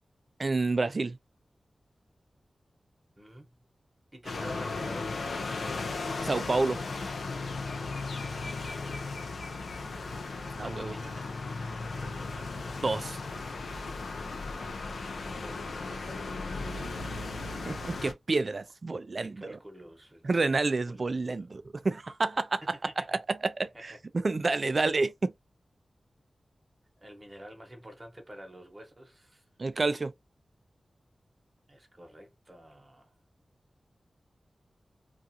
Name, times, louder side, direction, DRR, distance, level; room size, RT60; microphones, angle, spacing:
voice 1, 0.4-1.2 6.2-6.8 10.6-10.9 12.8-13.2 17.7-19.5 20.2-22.6 23.1-23.5 23.8-25.3 29.6-30.1, right 3 dB, 55° right, 0.3 m, -29 dB
voice 2, 3.2-3.6 4.1-5.6 8.4-9.1 10.6-12.7 15.0-17.0 19.2-21.5 22.6-23.2 23.6-24.0 27.0-29.4 31.7-33.1, equal, 25° right, 1.0 m, -49 dB
sound 1, 4.2-18.1, left 3 dB, 85° left, 0.5 m, -36 dB
2.4 x 2.4 x 2.7 m
cardioid pair, 55°, 0 cm